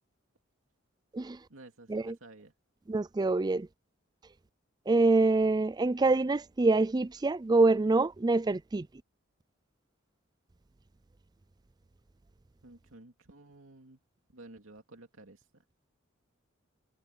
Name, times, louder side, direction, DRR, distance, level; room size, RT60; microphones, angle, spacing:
voice 1, 1.5-2.5 12.6-14.0 14.3-15.6, right 2 dB, 80° right, 2.6 m, -53 dB
voice 2, 2.9-3.7 4.9-8.9, right 3 dB, 20° right, 0.4 m, -25 dB
head